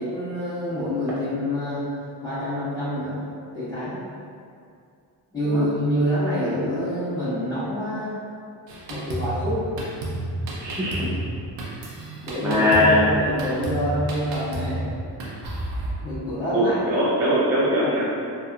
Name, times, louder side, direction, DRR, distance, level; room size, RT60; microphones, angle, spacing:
voice 1, 0.0-1.8 2.2-3.2 3.5-4.0 5.3-8.1 8.9-9.6 12.2-14.9 16.0-16.8, equal, 10° left, -14 dB, 1.3 m, -26 dB
Drum kit, 8.7-15.9, right 1 dB, 85° right, 0.7 m, -31 dB
voice 2, 10.6-11.1 12.4-13.0 16.5-18.1, left 1 dB, 5° right, -9 dB, 0.3 m, -21 dB
2.9 x 2.1 x 2.3 m, 2.4 s
cardioid pair, 95°, 43 cm